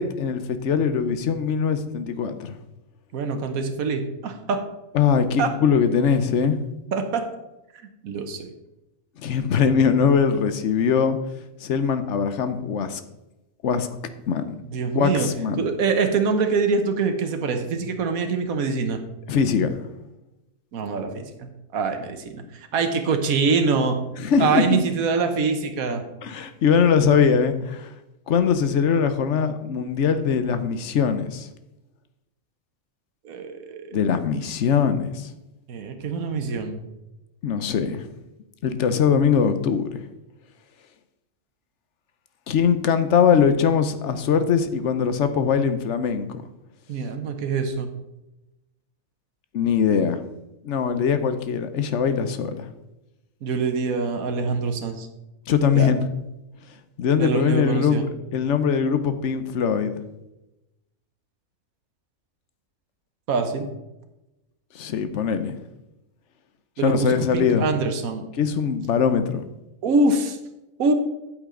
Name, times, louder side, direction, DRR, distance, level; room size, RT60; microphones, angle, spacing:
voice 1, 0.0-2.6 4.9-6.6 9.2-11.2 11.6-13.0 13.6-13.9 14.3-14.6 14.9-15.7 19.3-19.7 24.2-24.8 26.2-27.9 28.3-31.5 33.9-35.3 37.4-38.1 38.6-40.1 42.5-46.4 49.5-50.2 50.6-52.7 55.5-56.0 57.0-60.0 64.7-65.5 66.8-67.7 68.4-69.4, left 6 dB, 60° left, 10 dB, 1.0 m, -21 dB
voice 2, 3.1-4.6 5.4-5.5 6.9-7.2 8.0-8.5 14.7-15.3 15.6-19.0 20.7-24.0 24.4-26.0 33.2-34.0 35.7-36.8 46.9-47.9 53.4-55.1 55.7-55.9 57.2-58.0 63.3-63.7 66.8-68.3 69.8-70.4 70.8-70.9, right 4 dB, 90° right, 6 dB, 1.4 m, -24 dB
8.5 x 8.4 x 3.8 m, 0.95 s
omnidirectional pair, 1.4 m